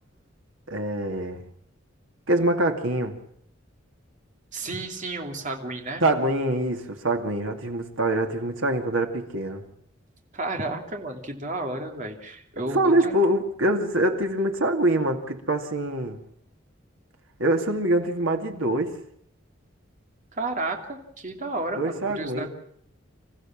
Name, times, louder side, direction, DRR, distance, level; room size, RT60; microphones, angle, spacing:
voice 1, 0.7-1.4 2.3-3.2 6.0-9.6 12.7-16.2 17.4-19.0 21.8-22.5, right 1 dB, 85° right, 2.5 m, -24 dB
voice 2, 4.5-6.0 10.3-13.2 20.3-22.5, right 2 dB, 40° right, 2.7 m, -32 dB
27.0 x 15.0 x 7.4 m
head